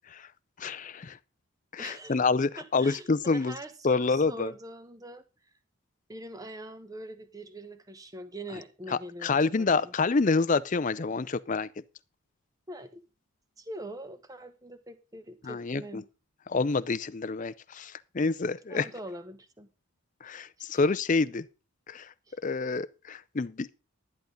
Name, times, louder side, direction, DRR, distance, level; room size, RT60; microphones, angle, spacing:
voice 1, 0.6-1.2 1.7-3.5 3.8-4.5 8.9-11.7 15.4-15.8 16.5-18.9 20.2-21.4 21.9-22.1 22.4-23.7, left 4 dB, 35° left, 0.5 m, -27 dB
voice 2, 1.8-2.2 2.6-5.2 6.1-9.9 12.7-13.0 13.6-16.1 18.7-19.7 20.6-20.8 22.3-22.4, right 1 dB, 15° right, 1.0 m, -43 dB
12.0 x 11.0 x 3.9 m
head